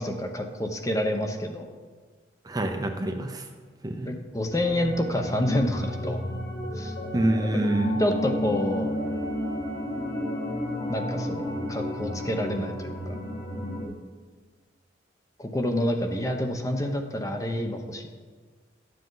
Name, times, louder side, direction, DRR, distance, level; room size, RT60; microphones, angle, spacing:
voice 1, 0.0-1.7 4.1-6.2 6.7-6.9 7.4-7.7 8.0-8.9 10.9-13.2 15.4-18.1, left 1 dB, 15° left, 4 dB, 0.7 m, -28 dB
voice 2, 2.4-3.5 3.8-4.1 7.1-8.0, right 1 dB, 20° right, 4 dB, 0.6 m, -26 dB
sound 1, 4.5-13.8, equal, 55° left, 1.8 m, -32 dB
12.0 x 7.6 x 3.9 m, 1.5 s
head